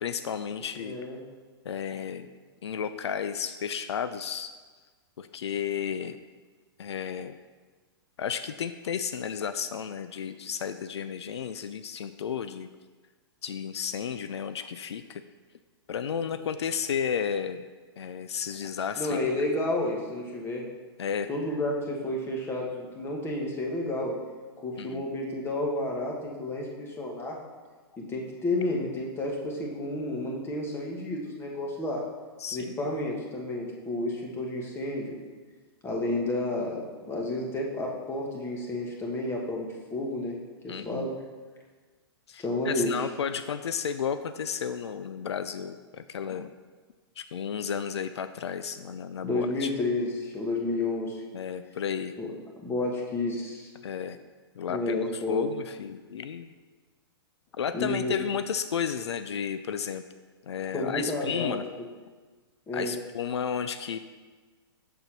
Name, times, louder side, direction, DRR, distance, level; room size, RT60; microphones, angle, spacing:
voice 1, 0.0-1.0 1.7-2.3 2.6-4.5 5.2-6.2 6.8-7.4 8.2-12.7 13.4-15.2 15.9-17.6 18.0-19.2 21.0-21.3 24.8-25.0 32.4-32.8 40.7-41.1 42.3-46.5 47.2-49.7 51.3-52.1 53.8-54.2 54.6-56.5 57.6-60.0 60.4-61.6 62.7-64.0, left 7 dB, 85° left, 11 dB, 0.4 m, -33 dB
voice 2, 0.7-1.2 16.1-16.2 19.0-20.7 21.3-24.2 24.6-27.4 28.0-32.0 32.5-35.1 35.8-40.4 40.6-41.1 42.4-43.0 49.2-51.2 52.2-52.3 52.6-53.7 54.7-55.5 57.7-58.1 60.7-61.6 62.7-62.9, left 2 dB, 15° left, -1 dB, 1.3 m, -31 dB
6.8 x 3.9 x 5.9 m, 1.4 s
hypercardioid pair, 130°, 14 cm